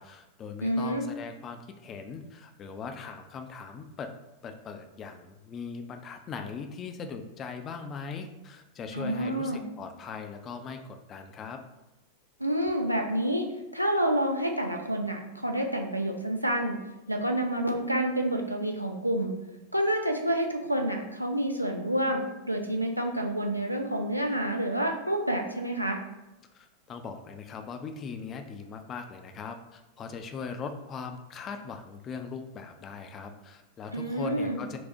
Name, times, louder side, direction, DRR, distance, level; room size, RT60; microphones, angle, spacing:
voice 1, 0.0-4.1 4.4-11.6 26.5-34.8, left 5 dB, 30° left, 6 dB, 0.3 m, -40 dB
voice 2, 0.6-1.0 8.9-9.6 12.4-13.5 13.7-16.7 17.1-19.4 19.7-26.0 33.9-34.6, right 1 dB, 90° right, 2 dB, 0.4 m, -28 dB
4.4 x 2.0 x 2.6 m, 0.99 s
figure-of-eight pair, 90°, 0 cm